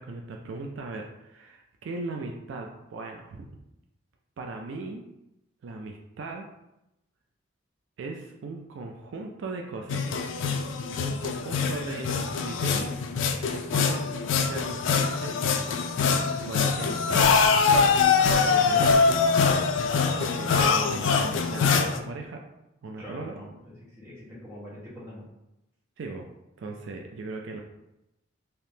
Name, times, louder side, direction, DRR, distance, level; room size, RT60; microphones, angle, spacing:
voice 1, 0.0-3.5 4.4-5.0 5.6-6.5 8.0-10.2 11.0-13.0 13.5-14.1 14.3-15.3 16.4-17.4 18.5-19.0 20.2-22.4 22.8-23.3 26.0-26.3 26.6-27.6, right 3 dB, 65° right, 2 dB, 0.3 m, -38 dB
sound 1, 9.9-22.0, left 5 dB, 70° left, 0.3 m, -24 dB
voice 2, 15.9-16.3 23.0-25.2, left 1 dB, 10° right, -8 dB, 1.1 m, -43 dB
3.4 x 2.8 x 2.7 m, 0.90 s
head